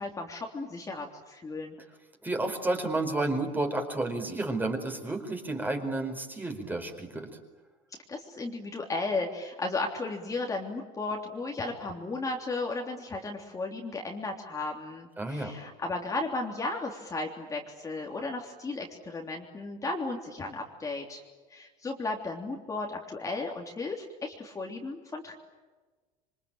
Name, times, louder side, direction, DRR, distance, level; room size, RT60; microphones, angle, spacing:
voice 1, 0.0-1.8 8.1-21.2 21.5-25.3, left 3 dB, 20° left, 1 dB, 3.4 m, -35 dB
voice 2, 2.2-7.3 15.2-15.5, right 2 dB, 10° right, 4 dB, 4.7 m, -31 dB
27.5 x 24.5 x 9.0 m, 1.3 s
supercardioid pair, 125°, 17 cm